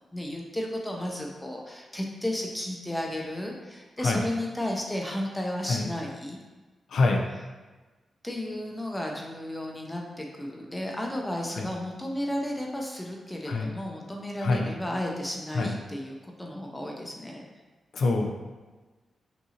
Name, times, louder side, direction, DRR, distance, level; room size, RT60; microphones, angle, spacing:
voice 1, 0.1-6.4 8.2-17.4, left 1 dB, 10° left, 0 dB, 0.5 m, -33 dB
voice 2, 6.9-7.2 11.6-11.7 13.5-13.7 14.4-14.7 15.6-15.7 17.9-18.3, left 3 dB, 70° left, 2 dB, 0.6 m, -24 dB
5.5 x 2.6 x 2.8 m, 1.2 s
wide cardioid pair, 110°, 0 cm